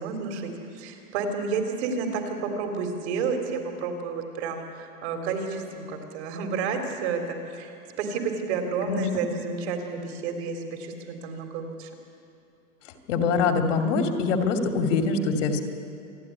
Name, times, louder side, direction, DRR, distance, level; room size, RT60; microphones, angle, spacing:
voice 1, 0.0-11.9, right 5 dB, 50° right, 3 dB, 3.6 m, -31 dB
voice 2, 13.1-15.6, left 4 dB, 55° left, 4 dB, 2.8 m, -24 dB
27.5 x 11.5 x 9.9 m, 2.6 s
hypercardioid pair, 150°, 43 cm